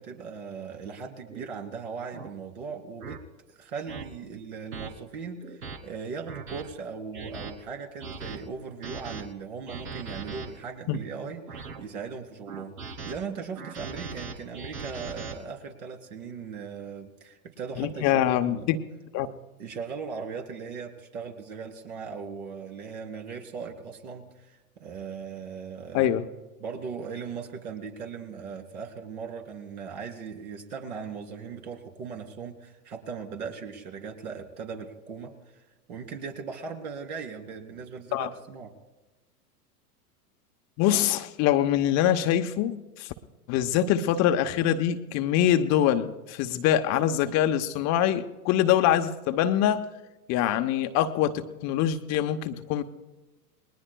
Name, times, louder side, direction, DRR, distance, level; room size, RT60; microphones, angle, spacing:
voice 1, 0.0-3.2 3.5-18.7 19.2-19.3 19.6-26.1 26.6-35.3 35.9-38.7, right 5 dB, 70° right, 3 dB, 3.2 m, -38 dB
sound 1, 1.3-1.5 2.1-2.3 3.0-3.2 3.9-4.1 4.7-4.9 5.4-5.8 6.3-6.6 7.1-7.5 8.0-8.4 8.8-9.2 9.7-10.5 11.1-11.8 12.5-13.1 13.6-15.3, right 4 dB, 85° right, 2.1 m, -39 dB
voice 2, 17.8-18.8 19.1-19.3 25.9-26.2 38.1-38.3 40.8-42.7 43.0-43.1 43.5-49.8 50.3-52.8, left 11 dB, 35° left, 8 dB, 0.9 m, -24 dB
29.5 x 20.0 x 2.3 m, 1.1 s
hypercardioid pair, 105°, 46 cm